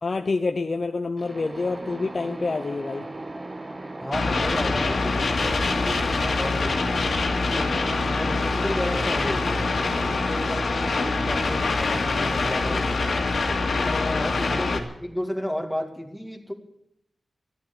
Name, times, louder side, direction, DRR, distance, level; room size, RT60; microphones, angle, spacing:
voice 1, 0.0-3.1 7.6-7.8 13.8-14.3, left 3 dB, 40° left, 5 dB, 0.8 m, -28 dB
sound 1, 1.2-14.8, right 2 dB, 20° right, 1.0 m, -38 dB
voice 2, 4.0-6.9 7.5-9.7 10.1-11.0 11.3-13.1 14.2-16.5, equal, ahead, 1 dB, 2.2 m, -33 dB
sound 2, 4.1-14.8, left 3 dB, 70° left, 2.1 m, -25 dB
14.0 x 11.5 x 8.3 m, 0.78 s
wide cardioid pair, 120°, 0 cm